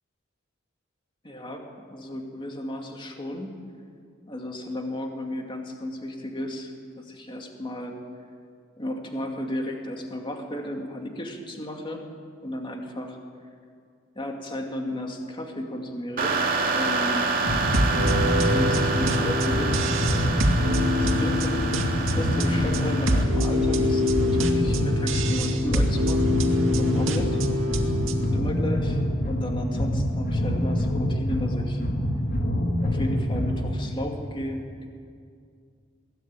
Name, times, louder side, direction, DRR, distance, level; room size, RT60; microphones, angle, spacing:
voice 1, 1.2-3.5 4.3-8.0 8.8-12.0 12.4-13.2 14.2-16.4 16.7-17.4 17.8-19.9 20.9-21.7 22.0-26.4 26.7-27.7 28.2-31.8 32.8-34.9, left 1 dB, 25° left, 2 dB, 2.5 m, -34 dB
sound 1, 16.2-23.2, right 4 dB, 45° right, 2.5 m, -28 dB
sound 2, 17.4-33.8, equal, 50° left, 2.5 m, -26 dB
sound 3, 17.7-28.4, left 1 dB, 70° right, 2.3 m, -26 dB
22.5 x 17.0 x 9.0 m, 2.2 s
head